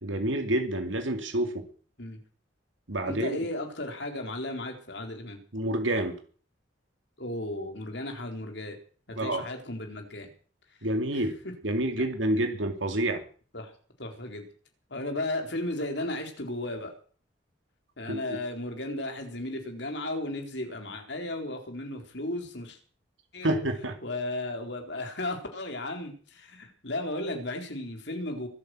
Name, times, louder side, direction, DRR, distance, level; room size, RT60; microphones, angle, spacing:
voice 1, 0.0-1.6 2.9-3.4 5.5-6.2 9.2-9.4 10.8-11.4 11.6-13.2 18.1-18.4 23.4-23.9, right 1 dB, 80° right, 5 dB, 2.5 m, -28 dB
voice 2, 3.0-5.4 7.2-8.8 9.1-10.3 11.1-11.3 13.5-13.7 14.0-14.4 14.9-16.9 18.0-22.8 23.3-23.6 24.0-28.5, left 1 dB, 60° left, 4 dB, 4.0 m, -35 dB
24.0 x 8.6 x 6.2 m, 0.43 s
head